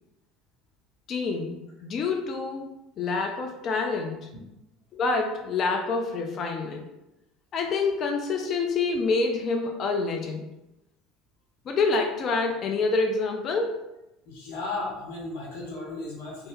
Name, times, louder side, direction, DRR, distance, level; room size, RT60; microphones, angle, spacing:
voice 1, 1.1-4.3 4.9-6.9 7.5-10.5 11.7-13.8, left 4 dB, 45° left, 3 dB, 0.3 m, -27 dB
voice 2, 14.2-16.5, left 2 dB, 65° left, -4 dB, 0.9 m, -35 dB
2.8 x 2.1 x 3.3 m, 0.93 s
figure-of-eight pair, 65°, 0 cm